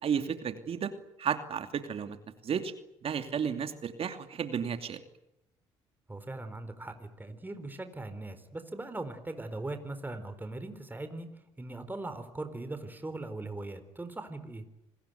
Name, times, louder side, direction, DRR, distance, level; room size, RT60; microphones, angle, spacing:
voice 1, 0.0-0.9 1.2-2.2 2.4-2.7 3.0-5.0, right 7 dB, 50° right, 8 dB, 2.7 m, -32 dB
voice 2, 6.1-11.3 11.6-14.6, right 2 dB, 15° right, 9 dB, 4.2 m, -40 dB
27.5 x 20.5 x 9.4 m, 0.87 s
supercardioid pair, 65°, 12 cm